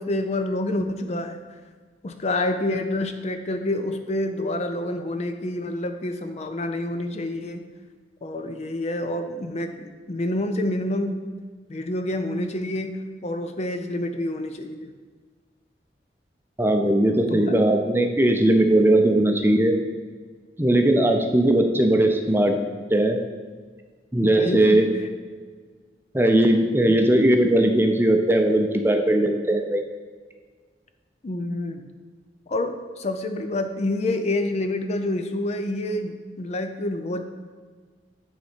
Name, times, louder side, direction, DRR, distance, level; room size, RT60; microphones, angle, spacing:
voice 1, 0.0-1.4 2.0-7.6 8.2-11.3 11.7-14.9 17.3-17.5 20.6-20.9 24.2-24.9 26.9-27.0 31.2-31.8 32.5-37.2, left 1 dB, 40° left, 7 dB, 0.5 m, -28 dB
voice 2, 16.6-19.7 20.6-22.5 22.9-23.2 24.1-24.9 26.1-29.8, right 1 dB, 15° right, 4 dB, 0.6 m, -19 dB
9.1 x 4.1 x 5.1 m, 1.5 s
head